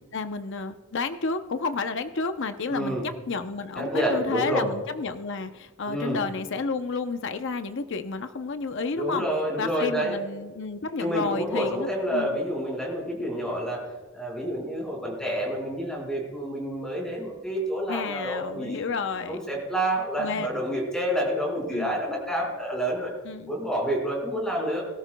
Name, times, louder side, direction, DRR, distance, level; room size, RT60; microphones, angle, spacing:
voice 1, 0.1-3.0 3.3-9.3 9.6-12.4 17.9-19.4 20.2-20.5 21.7-22.0 23.3-23.5, left 4 dB, 60° left, 8 dB, 0.6 m, -31 dB
voice 2, 2.7-3.1 3.7-4.7 5.9-6.2 9.0-10.2 11.0-13.9 14.1-18.8 19.3-23.1 23.5-24.8, right 1 dB, 5° left, -1 dB, 4.8 m, -28 dB
22.5 x 13.0 x 2.2 m, 1.4 s
head